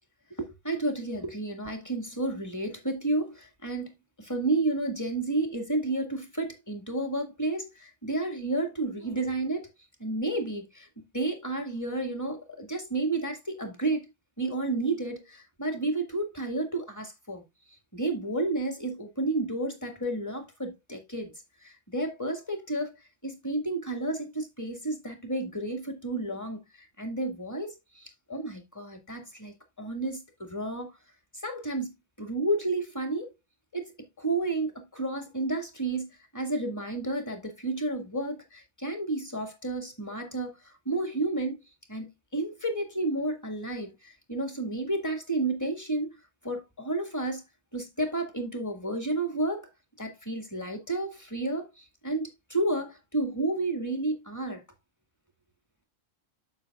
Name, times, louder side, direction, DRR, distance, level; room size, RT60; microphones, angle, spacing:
voice 1, 0.4-3.9 4.2-9.7 10.0-14.1 14.4-17.4 17.9-21.3 21.6-31.0 31.4-33.3 33.7-36.1 36.3-41.6 41.9-46.1 46.4-47.4 47.7-49.7 50.0-54.6, right 2 dB, 15° left, 1.8 m, -31 dB
9.3 x 7.0 x 2.3 m
omnidirectional pair, 1.3 m